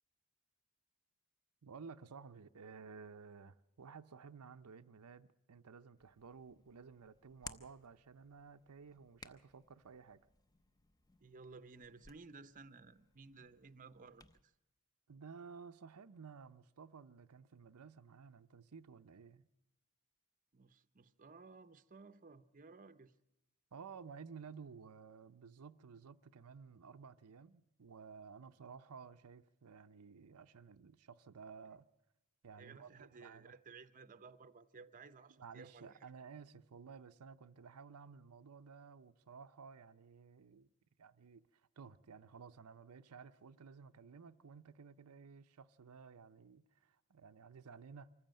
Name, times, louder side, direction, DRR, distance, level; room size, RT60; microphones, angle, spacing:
voice 1, 1.6-10.2 15.1-19.5 23.7-31.9 32.4-33.6 35.3-40.7 41.0-48.1, right 5 dB, 90° right, 0.6 m, -55 dB
Hands, 6.0-14.4, left 3 dB, 15° left, 0.7 m, -59 dB
voice 2, 11.2-14.5 20.5-23.1 32.6-36.0, right 4 dB, 35° right, 0.7 m, -56 dB
25.0 x 14.5 x 7.6 m
head